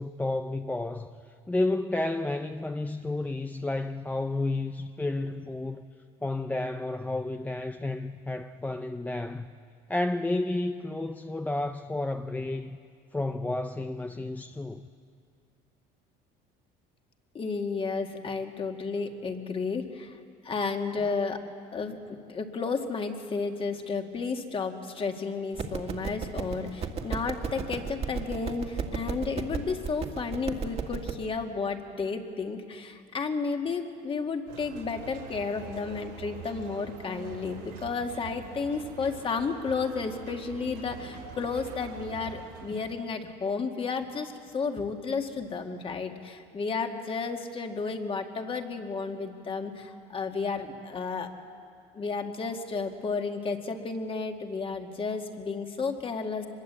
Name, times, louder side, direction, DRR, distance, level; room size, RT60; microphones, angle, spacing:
voice 1, 0.0-5.9 6.2-9.5 9.9-12.8 13.1-14.8 21.0-21.1, left 2 dB, 10° left, 0.6 m, -31 dB
voice 2, 17.3-20.2 20.4-21.4 21.7-51.3 51.9-56.5, left 4 dB, 30° left, 2.1 m, -32 dB
sound 1, 25.5-31.1, right 5 dB, 35° right, 1.9 m, -35 dB
sound 2, 34.5-43.3, right 6 dB, 80° right, 4.5 m, -44 dB
24.0 x 21.5 x 8.2 m
cardioid pair, 115°, 17 cm